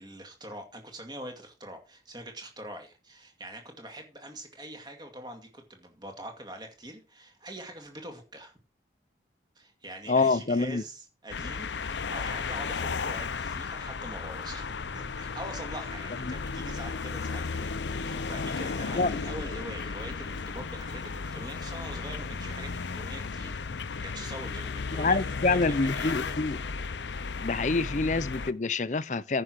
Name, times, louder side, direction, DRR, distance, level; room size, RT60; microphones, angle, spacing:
voice 1, 0.0-8.5 9.6-23.5 24.0-26.4, right 1 dB, 25° right, 2.3 m, -43 dB
voice 2, 10.1-10.8 16.3-16.4 18.9-19.1 24.9-26.6 27.4-29.4, left 3 dB, 40° left, 0.6 m, -26 dB
sound 1, 11.3-28.5, left 4 dB, 75° left, 0.7 m, -34 dB
9.8 x 6.3 x 6.2 m
head